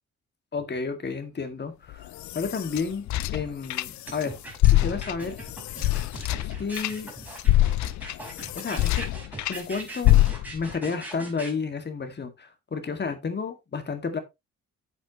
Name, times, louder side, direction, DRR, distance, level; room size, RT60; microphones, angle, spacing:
voice 1, 0.5-4.4 4.7-5.4 6.4-7.1 8.6-9.1 9.5-10.2 10.5-14.2, left 5 dB, 35° left, 2.1 m, -31 dB
sound 1, 1.9-4.2 4.5-9.6 10.0-10.7, left 15 dB, 70° left, 0.5 m, -24 dB
sound 2, 4.1-11.5, right 2 dB, 5° right, 4.5 m, -40 dB
8.2 x 8.1 x 3.0 m
cardioid pair, 90°, 30 cm